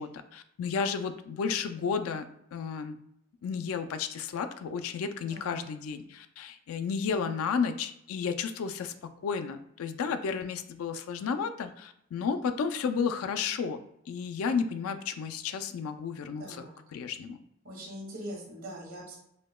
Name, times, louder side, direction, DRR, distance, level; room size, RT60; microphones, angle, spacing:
voice 1, 0.0-2.2 2.5-3.0 3.4-13.8 14.1-16.6 16.9-17.4, left 6 dB, 85° left, 9 dB, 0.3 m, -32 dB
voice 2, 5.1-5.6 16.4-16.8 17.6-19.2, equal, 80° right, -1 dB, 1.2 m, -42 dB
4.9 x 2.1 x 2.2 m, 0.76 s
head